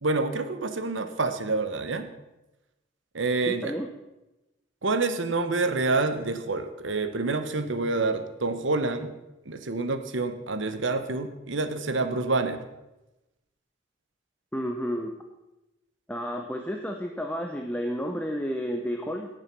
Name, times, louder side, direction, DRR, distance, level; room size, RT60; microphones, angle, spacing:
voice 1, 0.0-2.1 3.1-3.7 4.8-9.1 9.4-12.7, right 3 dB, 70° right, 8 dB, 1.2 m, -27 dB
voice 2, 3.5-3.9 14.5-15.1 16.1-19.3, equal, 5° left, 3 dB, 0.7 m, -31 dB
18.0 x 6.7 x 6.1 m, 0.99 s
head